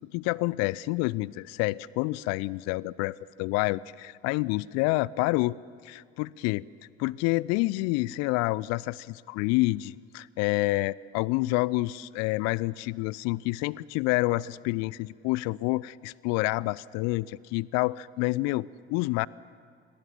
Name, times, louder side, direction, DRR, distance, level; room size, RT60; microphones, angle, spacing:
voice 1, 0.1-5.6 5.8-6.7 7.0-19.3, left 20 dB, 55° left, 23 dB, 0.6 m, -28 dB
28.0 x 22.0 x 7.4 m, 2.3 s
figure-of-eight pair, 60°, 32 cm